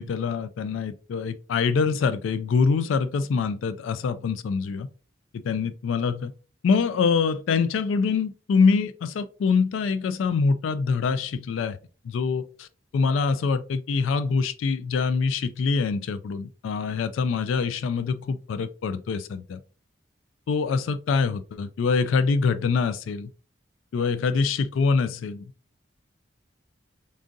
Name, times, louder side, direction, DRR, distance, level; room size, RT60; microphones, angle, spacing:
voice 1, 0.0-4.9 5.4-6.3 6.6-11.8 12.0-12.7 12.9-19.6 20.5-23.3 23.9-25.4, left 5 dB, 80° left, 0.3 m, -24 dB
3.8 x 3.6 x 2.5 m
head